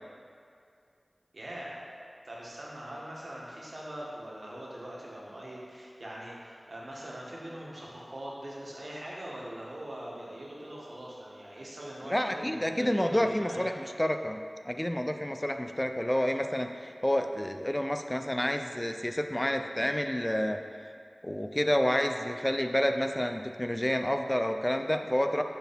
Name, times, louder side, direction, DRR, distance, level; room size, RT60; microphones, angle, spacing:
voice 1, 1.3-1.7 2.2-13.7, right 1 dB, 70° right, -5 dB, 1.4 m, -42 dB
voice 2, 12.1-14.4 14.6-20.6 21.2-25.4, equal, 15° left, 6 dB, 0.3 m, -29 dB
6.0 x 4.5 x 5.2 m, 2.3 s
wide cardioid pair, 50°, 0 cm